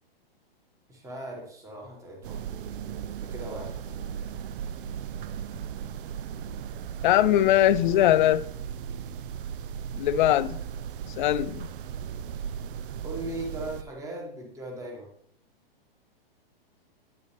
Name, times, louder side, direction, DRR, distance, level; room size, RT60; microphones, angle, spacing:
voice 1, 0.9-4.0 13.0-15.1, right 1 dB, 10° right, 1.6 m, -39 dB
sound 1, 2.2-13.8, right 8 dB, 65° right, 0.5 m, -37 dB
voice 2, 7.0-8.4 10.0-10.6 11.2-11.7, left 13 dB, 55° left, 0.4 m, -21 dB
9.5 x 6.4 x 3.4 m
hypercardioid pair, 150°, 30 cm